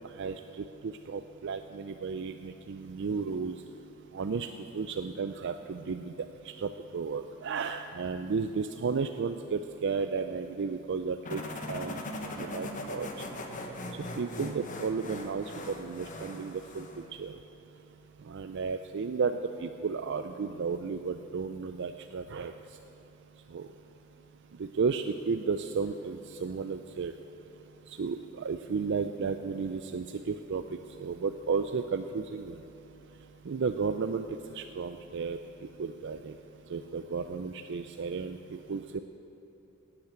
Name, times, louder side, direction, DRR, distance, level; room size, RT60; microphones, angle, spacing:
voice 1, 0.8-3.6 4.1-4.5 4.7-6.1 6.6-11.4 11.7-12.0 12.4-13.1 14.2-16.9 17.2-17.3 18.3-22.5 23.5-23.7 24.6-27.1 28.0-30.6 31.0-32.6 33.5-34.2 34.6-35.4 35.8-36.3 36.7-39.0, right 5 dB, 60° right, 8 dB, 0.4 m, -33 dB
sound 1, 11.2-17.1, left 1 dB, 40° left, 1.2 m, -40 dB
12.5 x 8.7 x 9.0 m, 3.0 s
head